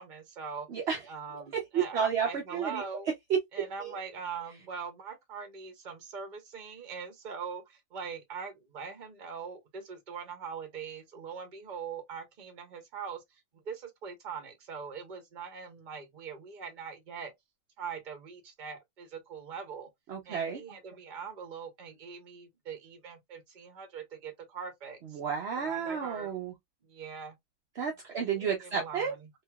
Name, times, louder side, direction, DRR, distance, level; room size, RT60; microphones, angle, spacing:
voice 1, 0.0-0.7 1.1-3.1 3.5-17.3 17.8-19.9 20.2-25.2 25.6-26.3 26.8-27.4 28.1-29.3, right 6 dB, 40° right, 0.9 m, -42 dB
voice 2, 0.7-1.0 1.7-2.8 3.8-3.9 20.1-20.6 25.1-26.5 27.8-29.1, right 7 dB, 60° right, 0.8 m, -31 dB
2.9 x 2.8 x 2.2 m
omnidirectional pair, 1.3 m